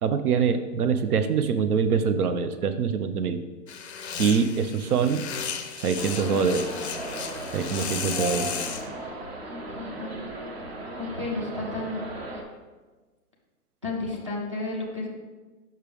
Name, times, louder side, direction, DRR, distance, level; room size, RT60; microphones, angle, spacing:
voice 1, 0.0-3.4 4.2-5.2 5.8-6.7 7.5-8.5, right 6 dB, 70° right, 10 dB, 0.6 m, -24 dB
sound 1, 3.7-8.9, left 6 dB, 45° left, 0.5 m, -34 dB
sound 2, 6.0-12.4, right 1 dB, 40° right, 0.8 m, -36 dB
voice 2, 9.8-10.2 10.9-12.1 13.8-15.1, left 2 dB, 20° right, -2 dB, 0.5 m, -32 dB
6.5 x 5.9 x 3.4 m, 1.3 s
hypercardioid pair, 180°, 47 cm